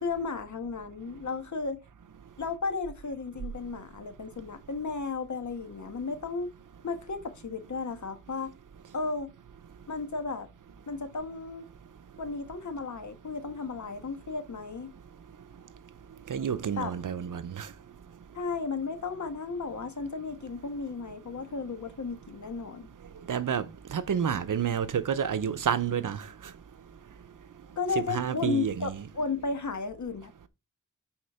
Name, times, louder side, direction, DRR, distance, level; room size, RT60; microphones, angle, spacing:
voice 1, 0.0-1.8 2.4-6.5 6.8-8.5 8.9-9.3 9.9-10.5 10.9-11.7 12.2-14.9 16.8-16.9 18.3-22.9 27.8-30.5, left 4 dB, 65° left, 1.5 m, -34 dB
voice 2, 16.3-17.7 23.3-23.7 23.9-26.2 28.1-29.0, right 8 dB, 80° right, 0.8 m, -29 dB
10.5 x 4.4 x 4.4 m
wide cardioid pair, 85°, 31 cm